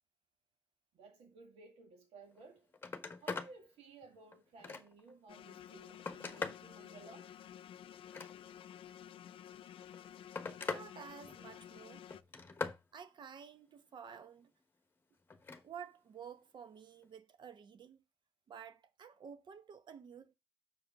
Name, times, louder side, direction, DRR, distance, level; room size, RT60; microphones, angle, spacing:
voice 1, 0.9-2.7 3.2-7.3, right 3 dB, 85° right, 2.2 m, -57 dB
Telephone, 2.3-2.4 2.7-3.5 4.0-5.1 5.7-6.7 7.9-8.7 9.7-10.9 11.2-11.7 12.1-12.8 15.3-15.6 17.0-17.2, left 4 dB, 20° left, 1.1 m, -42 dB
sound 1, 5.3-12.2, left 10 dB, 60° left, 0.5 m, -52 dB
voice 2, 10.7-12.1 12.9-14.5 15.6-18.0 18.5-20.3, right 7 dB, 50° right, 0.9 m, -52 dB
6.4 x 4.9 x 5.8 m
cardioid pair, 115°, 10 cm